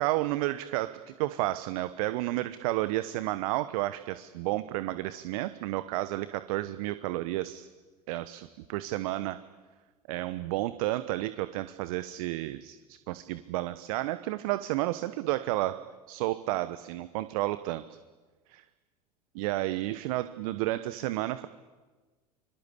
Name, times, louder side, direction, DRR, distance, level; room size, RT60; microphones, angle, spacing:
voice 1, 0.0-7.7 8.1-9.4 10.1-15.8 16.1-18.0 18.5-18.6 19.3-21.5, right 16 dB, 60° right, 13 dB, 1.1 m, -31 dB
26.0 x 24.5 x 8.4 m, 1.3 s
figure-of-eight pair, 80°, 21 cm